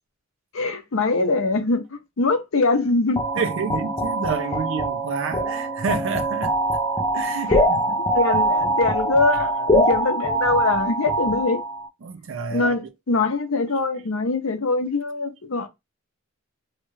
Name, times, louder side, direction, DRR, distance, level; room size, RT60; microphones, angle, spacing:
voice 1, 0.5-1.9 2.2-3.2 7.5-7.6 8.1-11.6 12.5-15.7, left 3 dB, 65° left, 0.6 m, -23 dB
sound 1, 3.2-11.9, right 1 dB, 15° left, 0.4 m, -23 dB
voice 2, 3.3-6.5 7.1-8.0 12.0-12.8, right 5 dB, 60° right, 0.5 m, -28 dB
2.8 x 2.3 x 3.0 m
head